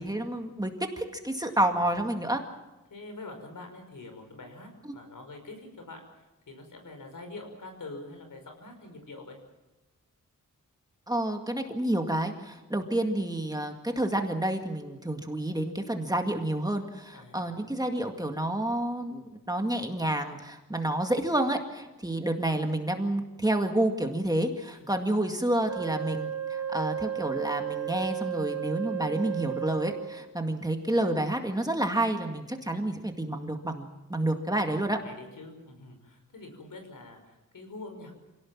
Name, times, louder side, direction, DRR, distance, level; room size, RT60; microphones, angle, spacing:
voice 1, 0.0-2.4 11.1-35.0, right 1 dB, 10° right, 4 dB, 2.1 m, -29 dB
voice 2, 1.5-2.2 2.9-9.4 17.1-17.7 24.8-24.9 25.2-25.3 34.6-38.1, left 2 dB, 75° left, 5 dB, 5.7 m, -45 dB
Wind instrument woodwind instrument, 25.7-30.3, right 10 dB, 60° right, 3.3 m, -34 dB
26.5 x 18.0 x 7.4 m, 1.0 s
wide cardioid pair, 135°, 33 cm